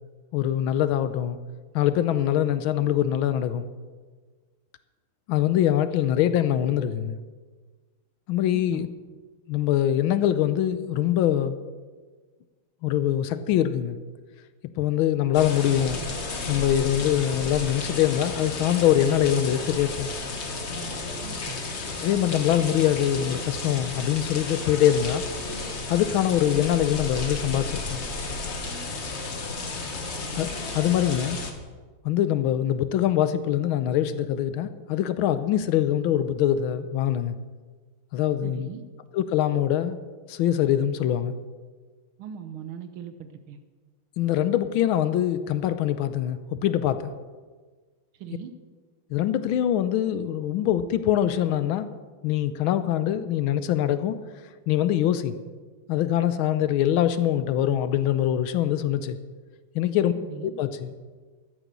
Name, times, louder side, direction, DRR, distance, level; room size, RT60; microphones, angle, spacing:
voice 1, 0.3-1.4 1.7-3.7 5.3-7.2 8.3-8.9 9.5-11.6 12.8-14.0 14.8-16.0 16.5-20.1 22.0-25.3 25.9-28.0 30.4-31.4 32.0-37.3 38.1-38.7 39.1-40.0 40.3-41.3 44.2-47.1 49.1-51.9 52.2-54.2 54.7-55.3 55.9-59.2 59.7-60.1 60.6-60.9, left 11 dB, 80° left, 12 dB, 1.4 m, -23 dB
voice 2, 8.5-8.9 21.2-21.6 38.4-38.8 42.2-43.6 48.1-48.5 60.1-60.5, right 7 dB, 75° right, 9 dB, 1.7 m, -39 dB
sound 1, 15.3-31.5, left 3 dB, 35° left, 1.3 m, -33 dB
13.0 x 9.2 x 6.8 m, 1.4 s
omnidirectional pair, 2.3 m